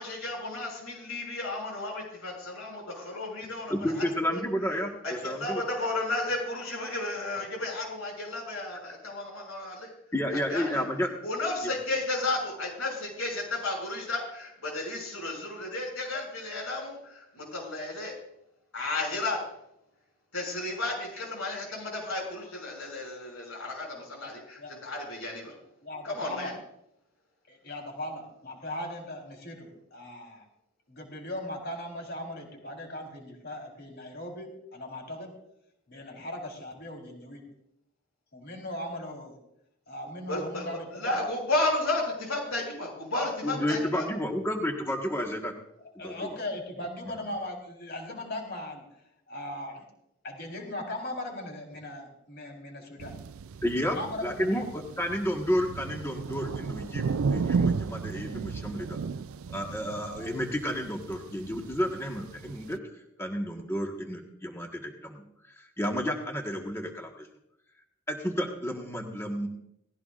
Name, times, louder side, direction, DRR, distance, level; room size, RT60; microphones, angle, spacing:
voice 1, 0.0-4.0 4.3-4.4 4.7-4.8 5.0-9.9 10.5-10.8 11.2-18.1 18.7-19.4 20.3-25.5 26.0-26.5 40.2-40.7 40.9-44.0, left 2 dB, 85° left, -1 dB, 6.6 m, -33 dB
voice 2, 3.7-5.6 10.1-11.1 11.6-11.7 43.4-45.5 46.0-46.3 53.6-54.0 54.2-59.0 59.5-67.3 68.1-69.5, equal, 10° left, 1 dB, 1.5 m, -31 dB
voice 3, 24.2-24.7 25.8-26.6 27.5-30.5 30.9-35.3 35.9-37.4 38.3-39.4 39.9-41.3 46.0-48.9 49.3-49.8 50.2-53.2 53.9-54.8 60.1-60.2, left 1 dB, 50° left, 1 dB, 4.1 m, -39 dB
sound 1, 53.0-62.8, right 5 dB, 85° right, 0.4 m, -34 dB
18.5 x 16.0 x 2.5 m, 0.79 s
head